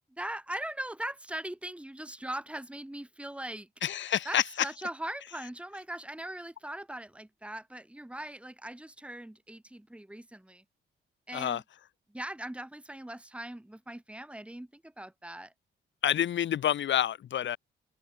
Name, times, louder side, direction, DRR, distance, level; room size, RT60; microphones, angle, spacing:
voice 1, 0.2-3.7 4.2-10.6 11.3-11.6 12.1-15.5, right 1 dB, 5° right, 4.6 m, -40 dB
voice 2, 3.8-4.7 11.3-11.6 16.0-17.6, left 10 dB, 70° left, 7.4 m, -28 dB
cardioid pair, 90°, 20 cm